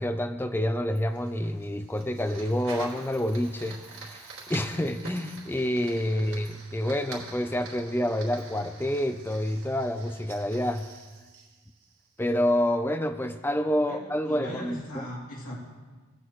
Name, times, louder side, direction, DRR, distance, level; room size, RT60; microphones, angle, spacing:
voice 1, 0.0-10.9 12.2-15.1, left 1 dB, 10° left, 8 dB, 0.5 m, -28 dB
Fire, 1.0-12.3, right 4 dB, 80° right, 3.5 m, -46 dB
voice 2, 6.1-6.4 13.8-15.5, equal, 75° left, -6 dB, 2.9 m, -40 dB
20.5 x 8.5 x 3.1 m, 1.4 s
head